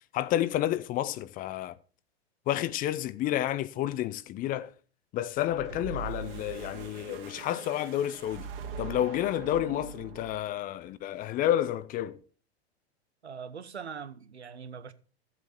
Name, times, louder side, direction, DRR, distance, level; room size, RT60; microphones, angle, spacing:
voice 1, 0.1-1.8 2.5-4.7 5.1-8.5 8.8-12.2, left 12 dB, 25° left, 0.5 m, -30 dB
sound 1, 5.3-10.6, right 6 dB, 55° right, 2.4 m, -42 dB
voice 2, 13.2-14.9, right 6 dB, 85° right, 1.1 m, -42 dB
13.5 x 7.6 x 4.5 m
figure-of-eight pair, 100°, 32 cm